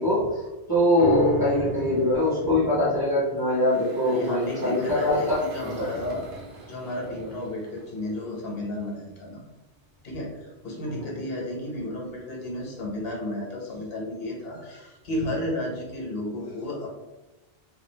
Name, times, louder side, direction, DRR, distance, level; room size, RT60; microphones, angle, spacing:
voice 1, 0.0-5.9 10.9-11.2, left 1 dB, 25° right, -8 dB, 0.7 m, -23 dB
sound 1, 1.0-7.6 8.1-8.2, left 1 dB, 40° left, 0.7 m, -37 dB
Engine, 3.4-8.7, right 2 dB, 60° right, 0.8 m, -45 dB
voice 2, 4.1-6.2 6.7-9.4 10.0-16.9, left 1 dB, 65° left, -3 dB, 0.9 m, -33 dB
2.3 x 2.2 x 3.2 m, 1.1 s
omnidirectional pair, 1.1 m